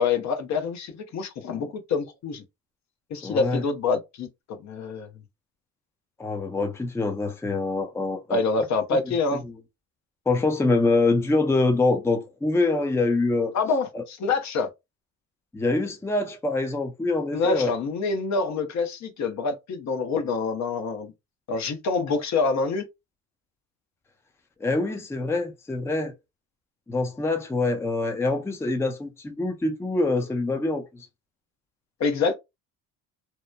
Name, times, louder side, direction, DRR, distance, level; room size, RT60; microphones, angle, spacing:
voice 1, 0.0-2.4 3.1-5.1 8.3-9.4 13.5-14.7 17.3-21.1 21.5-22.9 32.0-32.4, left 4 dB, 45° left, 0.7 m, -26 dB
voice 2, 3.2-3.6 6.2-8.4 9.0-9.1 10.3-13.5 13.9-14.0 15.5-17.7 24.6-26.1 26.9-31.1, left 3 dB, 5° left, 0.5 m, -25 dB
2.9 x 2.1 x 2.2 m
supercardioid pair, 80°, 37 cm